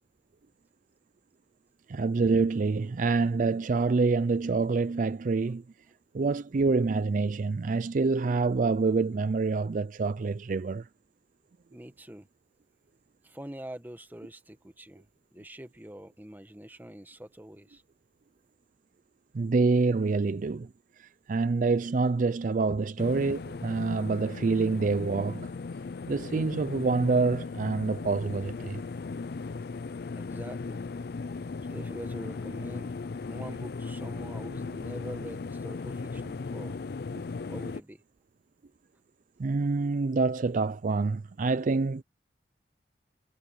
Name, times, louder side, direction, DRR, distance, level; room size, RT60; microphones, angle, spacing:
voice 1, 1.9-5.6 6.1-10.9 19.3-20.7 21.0-25.5 26.1-28.8 39.4-42.0, right 4 dB, 45° right, 0.4 m, -26 dB
voice 2, 11.7-12.3 13.2-17.8 22.7-22.8 30.1-31.0 31.6-33.0 33.2-36.8 37.5-38.0, right 1 dB, 10° right, 1.2 m, -44 dB
sound 1, 23.0-37.8, left 4 dB, 60° left, 0.4 m, -37 dB
head